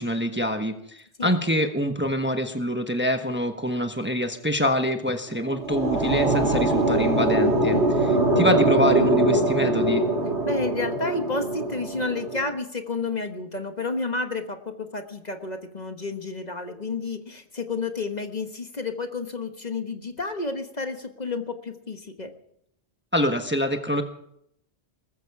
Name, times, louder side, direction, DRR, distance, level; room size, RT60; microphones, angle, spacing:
voice 1, 0.0-7.8 8.4-10.1 23.1-24.0, equal, 10° right, 6 dB, 1.2 m, -25 dB
sound 1, 5.3-12.4, right 2 dB, 85° right, 4.6 m, -23 dB
voice 2, 7.6-8.0 10.4-22.3, left 3 dB, 40° left, 6 dB, 1.5 m, -31 dB
20.5 x 14.0 x 4.8 m, 0.73 s
omnidirectional pair, 1.1 m